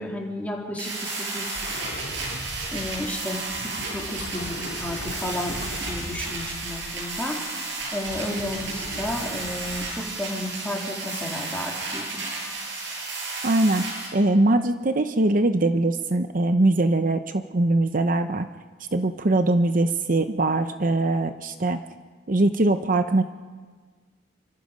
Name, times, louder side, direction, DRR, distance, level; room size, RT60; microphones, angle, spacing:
voice 1, 0.0-1.7 2.7-7.4 7.9-12.2, left 1 dB, 10° left, -2 dB, 3.6 m, -32 dB
sound 1, 0.8-14.1, right 3 dB, 90° right, 8.0 m, -33 dB
sound 2, 1.4-7.2 7.6-10.1 12.6-12.7, left 1 dB, 80° left, 2.5 m, -39 dB
voice 2, 13.4-13.8 14.1-18.5 18.9-21.8 22.3-23.2, right 2 dB, 50° right, 8 dB, 0.8 m, -22 dB
27.5 x 24.5 x 5.2 m, 1.5 s
head